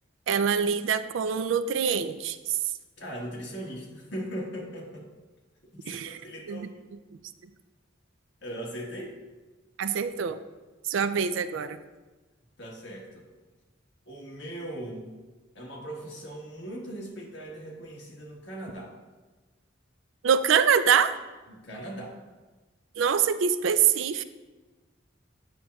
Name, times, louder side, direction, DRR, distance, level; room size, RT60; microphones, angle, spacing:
voice 1, 0.3-2.4 5.9-6.2 6.5-6.7 9.8-10.4 10.9-11.8 20.2-21.1 23.0-24.2, right 7 dB, 75° right, 12 dB, 0.3 m, -24 dB
voice 2, 3.0-5.0 5.7-6.7 8.4-9.2 12.6-13.3 14.1-15.1 15.5-18.9 21.5-22.2, right 1 dB, 60° left, -2 dB, 1.4 m, -39 dB
8.9 x 6.3 x 2.3 m, 1.2 s
head